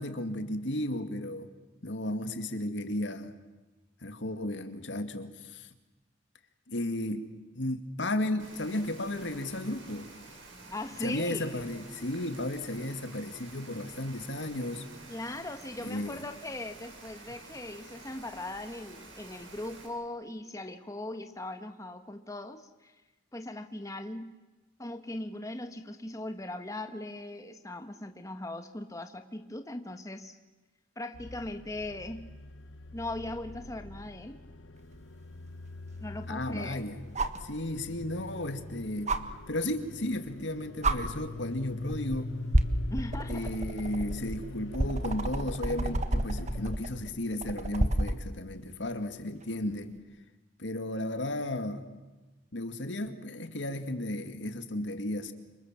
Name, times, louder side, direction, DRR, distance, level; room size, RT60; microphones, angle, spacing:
voice 1, 0.0-1.5 1.8-3.3 4.0-5.7 6.7-7.3 7.6-10.1 11.0-14.9 15.8-16.2 36.3-36.9 37.4-39.2 39.5-42.4 43.3-49.9 50.6-51.8 52.5-55.3, left 1 dB, 70° left, 9 dB, 2.2 m, -34 dB
Rain, 8.4-19.9, right 2 dB, 85° right, 7.4 m, -50 dB
voice 2, 10.7-11.6 15.1-23.0 23.3-24.4 24.8-30.4 31.0-32.4 32.9-34.4 36.0-36.9 42.9-43.5, left 2 dB, 15° left, 7 dB, 1.3 m, -39 dB
sound 1, 31.1-47.1, left 2 dB, 85° left, 1.1 m, -44 dB
sound 2, 34.9-35.0 37.2-37.5 39.1-39.2 40.3-40.5 40.8-41.0 41.9-42.2 42.5-48.2 49.9-50.0, right 1 dB, 40° right, 1.5 m, -29 dB
29.5 x 26.5 x 7.5 m, 1.2 s
head